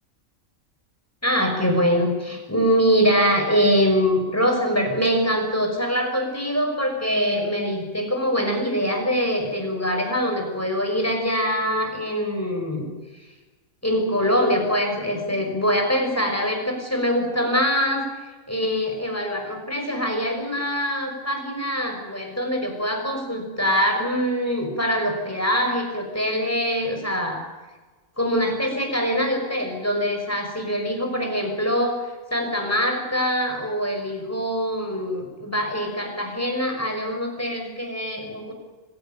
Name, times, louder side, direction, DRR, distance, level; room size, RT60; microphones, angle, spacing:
voice 1, 1.2-12.9 13.8-18.1 18.5-27.4 28.2-32.0 32.3-38.5, equal, 10° left, 3 dB, 5.9 m, -23 dB
26.0 x 16.5 x 9.1 m, 1.2 s
omnidirectional pair, 1.4 m